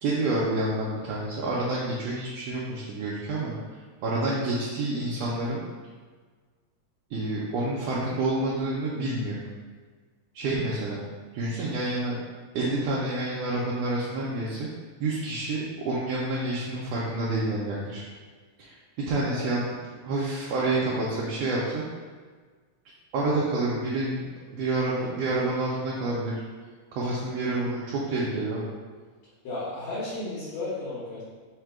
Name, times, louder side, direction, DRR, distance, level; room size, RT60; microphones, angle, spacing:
voice 1, 0.0-5.7 7.1-9.4 10.3-11.0 11.3-12.2 12.5-14.7 15.0-18.0 18.6-19.7 20.0-21.8 23.1-24.2 24.5-26.4 26.9-28.7, right 2 dB, 75° right, -6 dB, 1.6 m, -28 dB
voice 2, 29.4-31.2, left 2 dB, 70° left, -10 dB, 2.3 m, -33 dB
4.9 x 2.2 x 4.6 m, 1.5 s
omnidirectional pair, 3.4 m